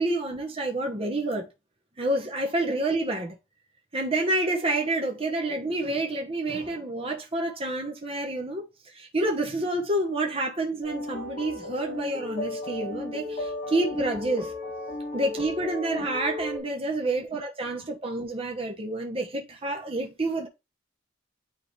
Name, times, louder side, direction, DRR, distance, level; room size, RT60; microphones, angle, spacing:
voice 1, 0.0-1.5 2.0-3.4 3.9-8.6 8.9-14.5 15.1-20.5, right 2 dB, 30° right, 1.1 m, -28 dB
sound 1, 10.8-16.6, left 2 dB, 40° left, 4.7 m, -35 dB
9.4 x 3.8 x 3.3 m
head